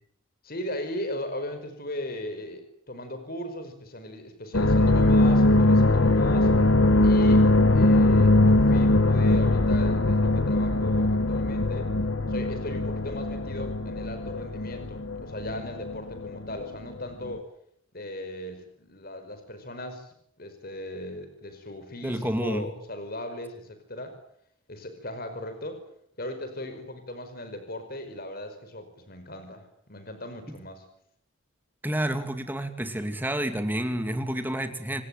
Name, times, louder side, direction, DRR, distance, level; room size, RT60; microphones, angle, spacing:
voice 1, 0.4-6.5 7.0-11.9 12.3-17.4 17.9-24.2 24.7-25.8 26.2-30.9, left 1 dB, 50° left, 8 dB, 5.3 m, -38 dB
sound 1, 4.5-16.7 16.9-17.4, left 2 dB, 80° left, 1.5 m, -21 dB
voice 2, 22.0-22.7 30.5-30.6 31.8-35.0, right 1 dB, 10° right, 7 dB, 2.6 m, -29 dB
27.5 x 18.5 x 9.3 m, 0.69 s
head